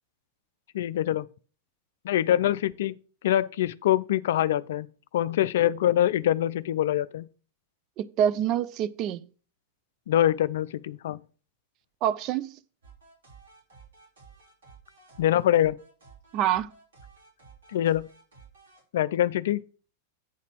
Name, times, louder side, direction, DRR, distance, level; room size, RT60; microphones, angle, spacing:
voice 1, 0.7-1.3 2.0-3.0 3.2-4.9 5.1-7.3 10.1-11.2 15.2-15.8 17.7-18.1 18.9-19.6, left 12 dB, 60° left, 0.4 m, -24 dB
voice 2, 8.0-9.2 12.0-12.6 16.3-16.7, right 10 dB, 40° right, 0.4 m, -26 dB
sound 1, 12.8-18.8, right 5 dB, 65° right, 3.6 m, -53 dB
8.4 x 4.1 x 6.0 m
figure-of-eight pair, 90°, 0 cm